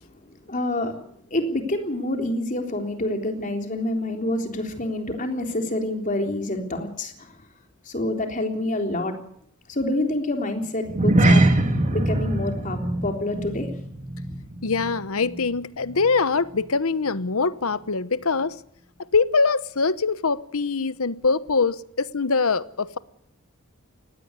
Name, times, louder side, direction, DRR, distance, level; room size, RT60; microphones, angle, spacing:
voice 1, 0.5-0.9 1.3-7.3 7.9-9.1 9.7-11.5 11.9-13.7, left 1 dB, 35° left, 3.6 m, -27 dB
sound 1, 10.8-15.5 15.7-16.0 16.5-16.6, right 1 dB, 35° right, 2.4 m, -22 dB
voice 2, 14.6-18.6 19.1-23.0, left 4 dB, 75° left, 1.0 m, -23 dB
19.5 x 16.5 x 9.7 m
head